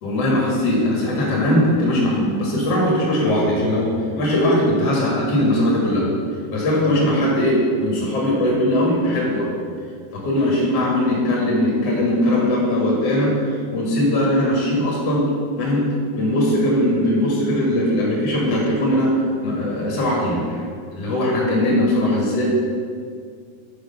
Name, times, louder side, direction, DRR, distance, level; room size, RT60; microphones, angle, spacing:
voice 1, 0.0-6.1 6.5-9.5 10.1-13.3 13.7-15.3 15.6-15.9 16.1-19.2 19.4-20.6 20.9-22.4, left 1 dB, 50° left, -4 dB, 2.2 m, -20 dB
6.4 x 6.3 x 5.3 m, 2.1 s
omnidirectional pair, 4.6 m